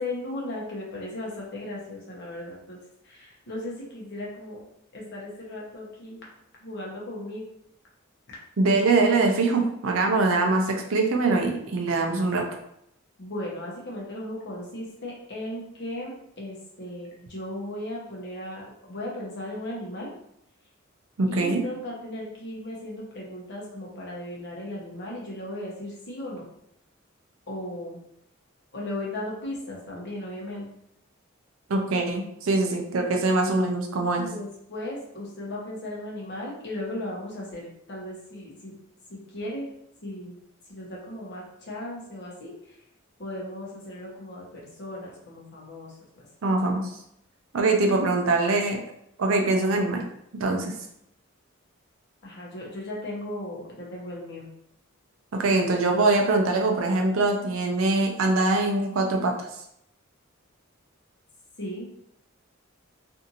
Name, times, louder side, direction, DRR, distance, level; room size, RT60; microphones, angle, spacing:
voice 1, 0.0-4.6 4.9-6.3 6.6-7.4 13.2-20.1 21.3-26.4 27.5-28.0 28.7-30.7 34.1-38.8 39.1-39.6 40.0-40.3 40.7-42.5 43.2-46.2 52.2-54.5 61.6-61.9, left 1 dB, 55° left, -3 dB, 0.8 m, -36 dB
voice 2, 8.6-12.5 21.2-21.6 31.7-34.3 46.4-46.9 47.5-48.8 49.2-50.0 50.4-50.7 55.3-59.3, right 3 dB, 70° right, 3 dB, 0.5 m, -23 dB
2.7 x 2.5 x 2.7 m, 0.76 s
head